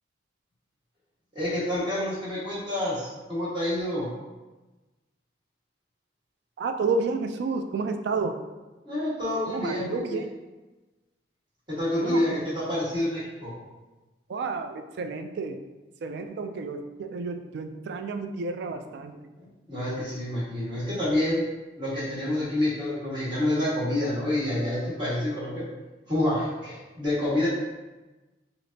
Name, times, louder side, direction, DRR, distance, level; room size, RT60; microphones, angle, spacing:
voice 1, 1.3-4.1 8.8-10.2 11.7-13.5 19.4-21.4 21.8-25.6 26.1-27.5, left 1 dB, 25° right, -9 dB, 1.4 m, -28 dB
voice 2, 6.6-8.4 9.5-10.3 12.0-12.2 14.3-15.6 16.0-19.2, right 4 dB, 60° right, 7 dB, 0.3 m, -30 dB
4.9 x 2.0 x 2.6 m, 1.1 s
head